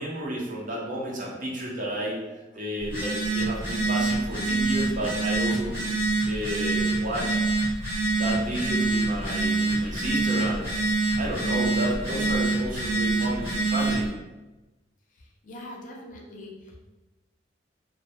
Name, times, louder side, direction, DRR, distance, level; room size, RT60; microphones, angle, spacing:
voice 1, 0.0-2.2 2.5-5.8 6.2-7.4 8.2-10.7 11.2-14.1, right 1 dB, 45° right, -3 dB, 0.6 m, -31 dB
Telephone, 2.8-14.1, right 3 dB, 15° right, 1.1 m, -26 dB
voice 2, 15.1-16.8, left 1 dB, 45° left, -1 dB, 0.4 m, -43 dB
2.1 x 2.0 x 2.8 m, 1.1 s
head